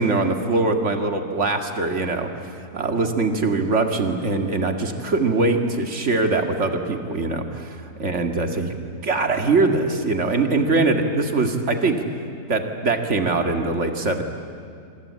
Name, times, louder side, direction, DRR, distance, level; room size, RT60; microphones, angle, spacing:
voice 1, 0.0-8.7 9.0-12.0 12.5-14.2, right 3 dB, 45° right, 5 dB, 2.3 m, -22 dB
28.0 x 24.0 x 8.7 m, 2.3 s
omnidirectional pair, 1.7 m